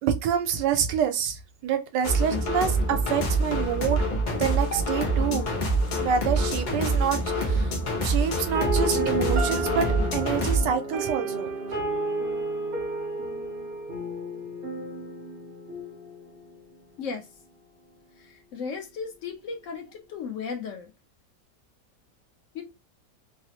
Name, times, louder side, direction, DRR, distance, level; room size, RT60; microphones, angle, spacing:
voice 1, 0.0-4.0 4.4-5.5 6.0-7.7 8.0-11.8, right 8 dB, 85° right, 1.2 m, -27 dB
sound 1, 2.0-10.6, right 1 dB, 90° left, 0.4 m, -26 dB
sound 2, 8.5-16.5, right 1 dB, 50° right, 0.6 m, -31 dB
voice 2, 18.2-20.9 22.5-22.6, left 5 dB, 65° left, 0.8 m, -35 dB
3.1 x 2.0 x 2.8 m
omnidirectional pair, 1.9 m